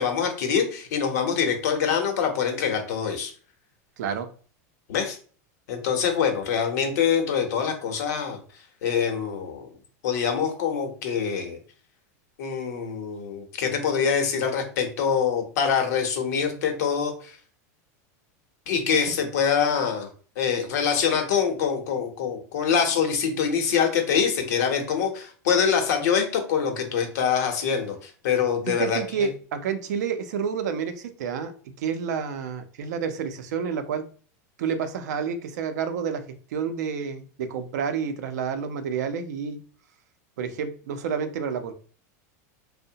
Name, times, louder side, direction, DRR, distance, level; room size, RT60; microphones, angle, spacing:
voice 1, 0.0-3.3 4.9-5.2 5.7-8.4 8.8-9.7 10.0-11.6 12.4-17.4 18.7-20.1 20.4-29.3, left 7 dB, 75° left, 4 dB, 0.7 m, -25 dB
voice 2, 4.0-4.3 28.7-31.5 31.8-34.0 34.6-36.2 36.5-39.6 40.4-41.7, right 6 dB, 80° right, 8 dB, 0.4 m, -29 dB
2.7 x 2.0 x 2.7 m, 0.41 s
supercardioid pair, 130°, 9 cm